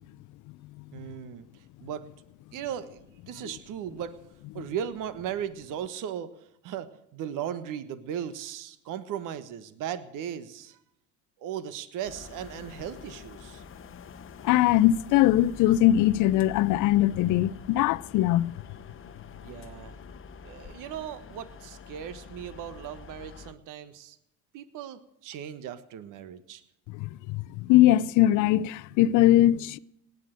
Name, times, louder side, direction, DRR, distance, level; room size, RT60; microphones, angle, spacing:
voice 1, 0.9-2.0 2.5-4.2 4.5-10.8 11.4-13.6 19.4-20.0 20.4-24.2 24.5-26.6, right 9 dB, 55° right, 1.4 m, -37 dB
sound 1, 12.0-23.5, left 6 dB, 35° left, 1.2 m, -46 dB
voice 2, 14.4-18.5 26.9-29.8, left 14 dB, 55° left, 0.7 m, -21 dB
18.5 x 9.4 x 7.7 m
hypercardioid pair, 75°, 37 cm